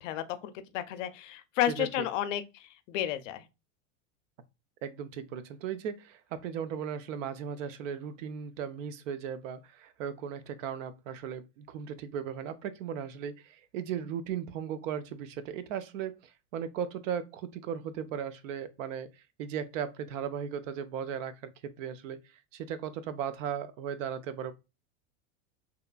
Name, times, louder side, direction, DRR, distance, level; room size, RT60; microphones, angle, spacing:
voice 1, 0.0-3.4, left 12 dB, 70° left, 0.5 m, -32 dB
voice 2, 1.7-2.1 4.8-24.5, right 8 dB, 75° right, 0.5 m, -37 dB
2.8 x 2.3 x 2.3 m
supercardioid pair, 175°, 38 cm